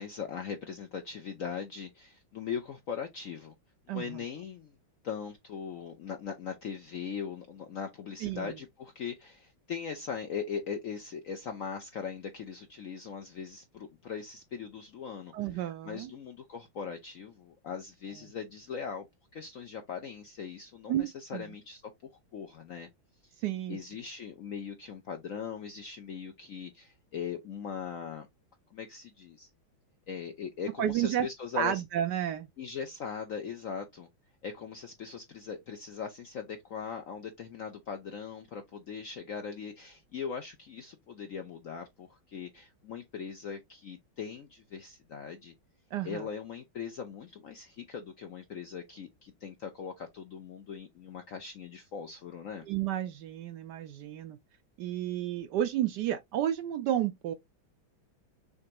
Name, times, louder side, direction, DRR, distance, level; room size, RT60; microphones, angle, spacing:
voice 1, 0.0-3.5 3.9-4.7 5.0-19.0 19.3-22.9 23.2-23.3 23.7-28.3 28.7-29.5 30.1-31.8 32.6-34.1 34.4-45.5 46.0-52.7, left 6 dB, 65° left, 0.8 m, -40 dB
voice 2, 3.9-4.2 8.2-8.6 15.3-16.1 20.9-21.5 23.4-23.8 30.8-31.3 31.5-32.5 45.9-46.3 52.7-54.4 54.8-57.3, right 11 dB, 70° right, 1.0 m, -31 dB
6.6 x 2.6 x 2.9 m
omnidirectional pair, 2.2 m